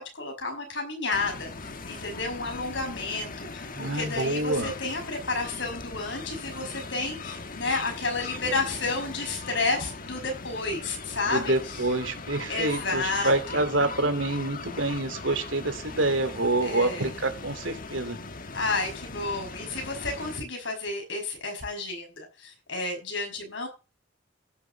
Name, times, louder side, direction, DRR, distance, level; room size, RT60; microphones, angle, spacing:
voice 1, 0.0-11.9 12.5-13.7 16.6-17.1 18.5-23.7, left 3 dB, 70° left, 3 dB, 5.8 m, -31 dB
sound 1, 1.1-20.4, left 3 dB, 45° left, 1.4 m, -39 dB
voice 2, 3.8-4.7 11.3-18.2, right 2 dB, 80° right, 8 dB, 2.5 m, -27 dB
15.5 x 6.9 x 6.8 m, 0.32 s
head